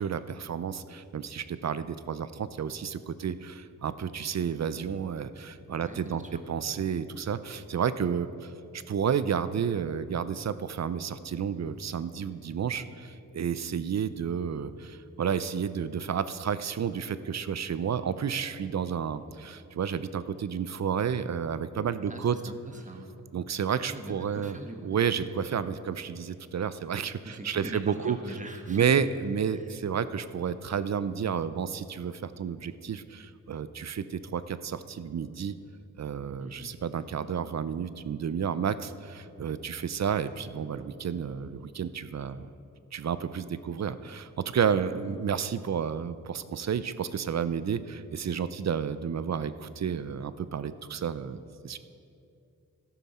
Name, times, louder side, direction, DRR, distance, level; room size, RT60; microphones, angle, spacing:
voice 1, 0.0-6.2 6.5-22.4 23.3-28.2 28.7-35.6 36.0-42.5 42.9-51.4 51.6-51.8, right 7 dB, 55° right, 14 dB, 0.5 m, -31 dB
voice 2, 5.7-6.4 22.1-23.1 23.8-25.0 27.2-28.9 29.5-29.7 36.4-36.8 44.8-44.9, right 1 dB, 20° right, 4 dB, 1.2 m, -43 dB
13.0 x 11.5 x 4.2 m, 2.6 s
wide cardioid pair, 85°, 33 cm